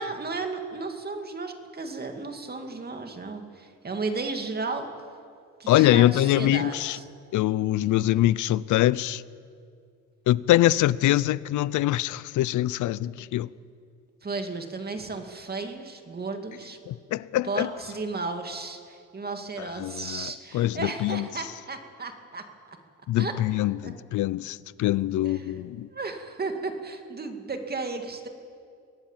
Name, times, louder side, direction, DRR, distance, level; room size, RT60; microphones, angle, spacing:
voice 1, 0.0-4.9 5.6-7.0 14.2-16.8 17.4-22.8 23.1-23.3 23.8-23.9 25.2-25.5 25.9-28.3, right 3 dB, 30° right, 2.4 m, -34 dB
voice 2, 5.7-7.0 7.3-9.2 10.3-13.5 16.9-17.7 19.6-21.3 23.1-25.9, left 14 dB, 80° left, 0.6 m, -24 dB
24.0 x 17.5 x 7.4 m
cardioid pair, 90°, 30 cm